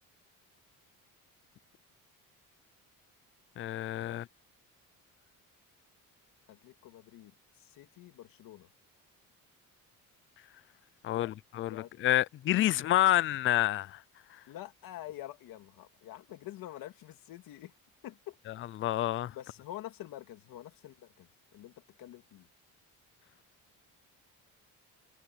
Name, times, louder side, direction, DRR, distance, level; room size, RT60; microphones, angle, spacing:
voice 1, 3.6-4.2 11.0-14.0 18.8-19.3, left 14 dB, 40° left, 0.4 m, -28 dB
voice 2, 6.5-8.7 11.1-11.3 11.6-11.9 14.5-17.7 18.0-18.4 19.3-22.5, left 14 dB, 75° left, 2.6 m, -47 dB
cardioid pair, 175°, 34 cm